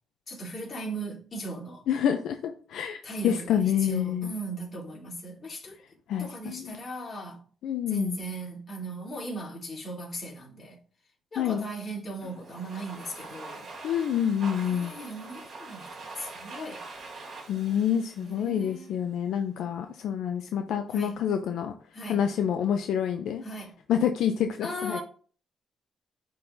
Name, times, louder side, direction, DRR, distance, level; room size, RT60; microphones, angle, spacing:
voice 1, 0.3-1.8 3.0-5.8 6.2-7.4 7.9-10.8 11.3-13.7 14.5-16.8 18.2-19.0 20.9-21.2 21.9-22.2 23.4-23.7 24.6-25.0, right 2 dB, 45° left, 3.0 m, -38 dB
voice 2, 1.9-3.0 3.2-4.3 6.1-6.8 7.6-8.2 11.4-11.7 13.8-14.9 17.5-21.8 22.1-23.4 23.9-25.0, left 9 dB, 80° left, 0.5 m, -27 dB
Domestic sounds home sounds, 12.2-19.1, right 3 dB, 60° right, 1.7 m, -44 dB
10.0 x 3.8 x 2.7 m
cardioid pair, 95°, 0 cm